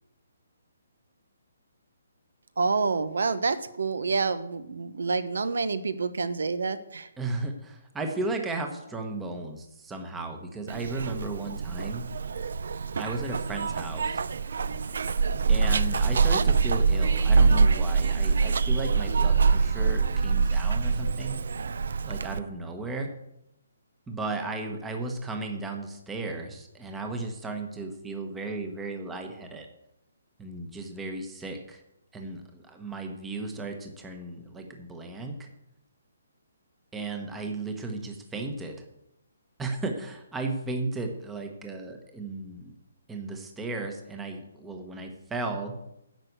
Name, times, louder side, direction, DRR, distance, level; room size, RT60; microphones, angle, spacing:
voice 1, 2.6-7.1, right 4 dB, 75° right, 13 dB, 1.0 m, -28 dB
voice 2, 7.2-12.1 12.9-14.2 15.5-21.4 22.0-23.1 24.1-29.7 30.4-31.8 32.1-35.5 36.9-38.8 39.6-42.7 43.1-45.7, right 3 dB, 5° right, 4 dB, 1.0 m, -35 dB
Zipper (clothing), 10.7-22.4, right 4 dB, 55° right, 0.5 m, -24 dB
10.5 x 6.7 x 8.1 m, 0.83 s
hypercardioid pair, 175°, 0 cm